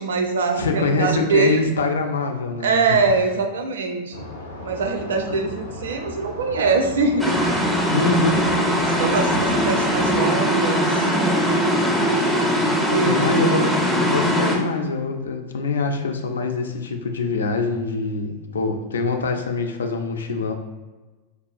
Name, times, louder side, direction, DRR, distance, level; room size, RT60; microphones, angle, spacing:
voice 1, 0.0-1.6 2.6-4.3 4.6-7.7 8.8-11.6 12.9-13.3, right 4 dB, 65° right, 5 dB, 0.4 m, -23 dB
voice 2, 0.6-3.0 7.9-8.5 8.7-8.9 13.0-20.5, left 3 dB, 70° left, 4 dB, 0.4 m, -24 dB
sound 1, 4.1-10.3, left 1 dB, 85° left, 0.8 m, -36 dB
sound 2, 7.2-14.6, equal, 5° right, 0.6 m, -21 dB
4.6 x 2.3 x 2.4 m, 1.2 s
figure-of-eight pair, 90°, 0 cm